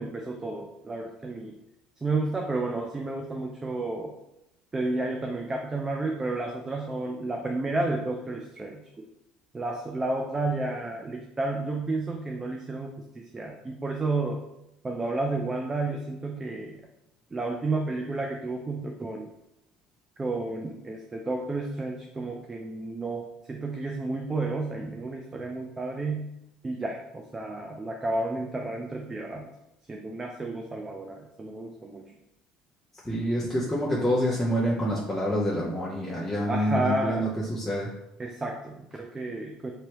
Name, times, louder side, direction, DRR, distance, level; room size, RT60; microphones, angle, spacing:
voice 1, 0.0-1.6 2.0-4.1 4.7-8.8 9.5-14.4 14.8-16.8 17.3-19.3 20.2-26.3 26.6-29.5 29.9-32.2 36.5-37.3 38.2-39.7, right 2 dB, 20° right, 1 dB, 0.4 m, -31 dB
voice 2, 33.0-37.9, equal, 5° left, -6 dB, 0.8 m, -27 dB
3.1 x 2.8 x 2.9 m, 0.86 s
supercardioid pair, 90°, 2 cm